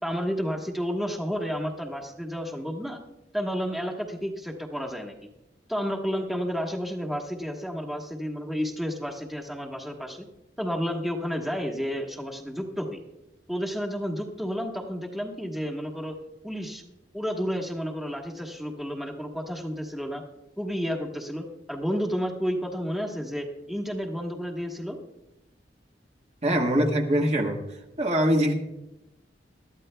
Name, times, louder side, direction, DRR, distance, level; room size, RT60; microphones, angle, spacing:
voice 1, 0.0-3.0 3.3-5.1 5.7-10.3 10.6-13.0 13.5-16.2 16.4-20.2 20.6-25.0, equal, ahead, 1 dB, 1.4 m, -31 dB
voice 2, 26.4-27.6 28.0-28.5, equal, 40° right, 2 dB, 1.4 m, -23 dB
22.0 x 13.5 x 2.2 m, 0.94 s
head